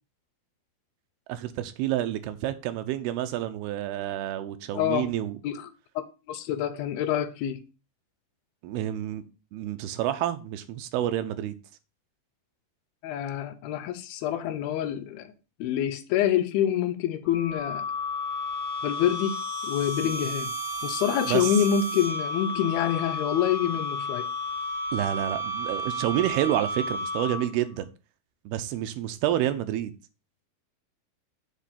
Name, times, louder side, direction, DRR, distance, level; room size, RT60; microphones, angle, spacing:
voice 1, 1.3-5.4 8.6-9.2 9.5-11.5 21.3-21.5 24.9-27.9 28.5-29.9, right 12 dB, 85° right, 2.5 m, -29 dB
voice 2, 4.7-5.1 5.4-5.7 6.0-7.6 13.0-15.3 15.6-17.9 18.8-19.4 19.6-20.5 20.8-24.3, left 10 dB, 80° left, 2.4 m, -27 dB
sound 1, 17.2-27.6, left 1 dB, 40° left, 0.5 m, -32 dB
7.3 x 3.7 x 5.7 m
omnidirectional pair, 4.5 m